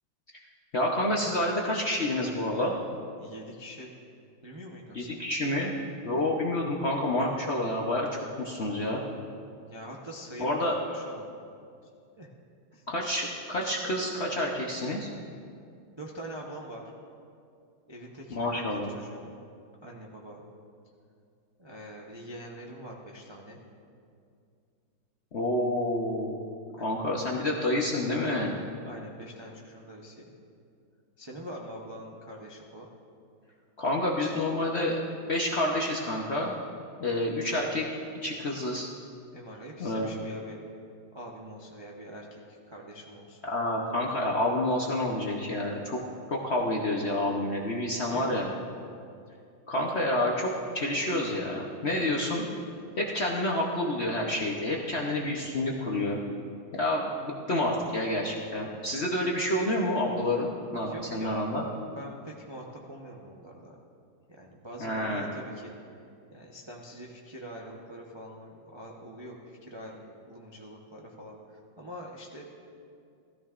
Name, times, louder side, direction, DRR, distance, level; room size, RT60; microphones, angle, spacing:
voice 1, 0.7-2.7 4.9-5.7 6.0-9.0 10.4-10.8 12.9-15.1 18.3-18.9 25.3-26.4 26.8-28.5 33.8-35.0 35.3-36.5 37.0-37.8 38.2-38.9 39.8-40.2 43.5-46.0 46.3-48.5 49.7-52.5 53.0-56.2 56.7-61.6 64.8-65.3, left 1 dB, 55° left, -2 dB, 0.7 m, -28 dB
voice 2, 3.2-3.9 4.4-5.2 6.0-6.3 9.7-11.4 12.2-12.3 12.7-12.8 16.0-16.8 17.9-18.7 18.9-19.3 19.8-20.4 21.6-23.6 26.8-27.0 28.9-30.3 31.2-32.9 39.3-40.6 41.1-43.4 47.9-48.6 60.8-61.4 61.9-63.8 64.3-65.7 66.3-72.4, equal, 45° right, -2 dB, 0.3 m, -44 dB
16.0 x 14.0 x 2.5 m, 2.4 s
omnidirectional pair, 2.2 m